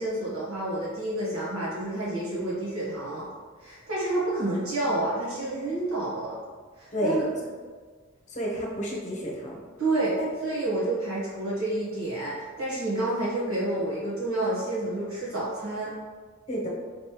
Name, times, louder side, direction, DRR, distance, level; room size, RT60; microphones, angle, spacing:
voice 1, 0.0-3.3 3.6-6.4 6.8-7.3 9.8-10.2 10.4-15.9, right 2 dB, 75° right, -9 dB, 1.4 m, -29 dB
voice 2, 8.3-9.6 10.2-10.3 16.5-16.7, equal, 35° left, -2 dB, 0.9 m, -30 dB
5.1 x 3.2 x 3.0 m, 1.5 s
head